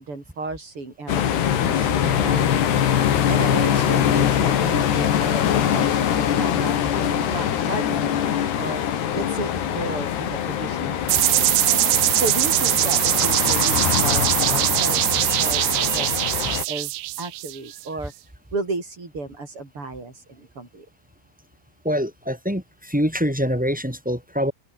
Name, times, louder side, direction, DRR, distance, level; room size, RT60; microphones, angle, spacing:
voice 1, 0.0-2.8 3.3-8.8 9.1-11.6 12.2-18.1 18.5-20.9, right 3 dB, 30° right, 5.6 m, -33 dB
sound 1, 1.1-16.6, left 9 dB, 65° left, 4.4 m, -23 dB
sound 2, 11.1-17.8, right 17 dB, 85° right, 3.5 m, -21 dB
voice 2, 21.8-24.5, equal, 5° right, 1.7 m, -24 dB
open air
omnidirectional pair, 5.4 m